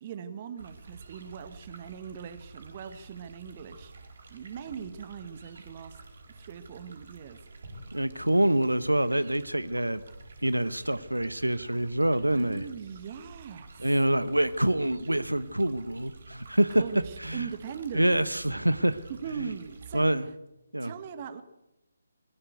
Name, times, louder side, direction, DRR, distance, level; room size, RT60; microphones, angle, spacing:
voice 1, 0.0-6.0 6.3-7.4 12.3-13.9 16.7-18.3 19.1-20.1 20.8-21.4, right 7 dB, 30° right, 12 dB, 1.6 m, -40 dB
sound 1, 0.6-20.1, right 3 dB, 50° right, 5.0 m, -49 dB
voice 2, 7.9-10.0 10.4-12.6 13.8-16.8 17.2-17.5 17.9-19.0 19.9-20.3 20.7-20.9, right 1 dB, 80° right, 14 dB, 1.2 m, -26 dB
22.0 x 15.0 x 8.2 m, 0.95 s
figure-of-eight pair, 145°, 0 cm